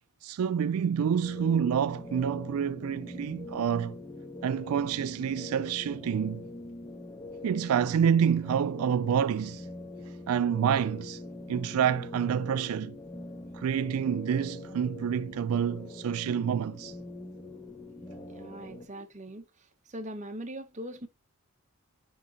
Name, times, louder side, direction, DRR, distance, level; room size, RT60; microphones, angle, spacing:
voice 1, 0.2-4.0 4.4-6.4 7.4-9.7 10.3-11.2 11.5-13.0 13.5-17.0, right 8 dB, 75° right, 0.3 m, -28 dB
sound 1, 1.2-18.9, left 2 dB, 20° left, 1.2 m, -43 dB
voice 2, 18.3-19.5 19.9-21.1, right 1 dB, 35° right, 1.1 m, -40 dB
9.9 x 3.6 x 4.0 m
head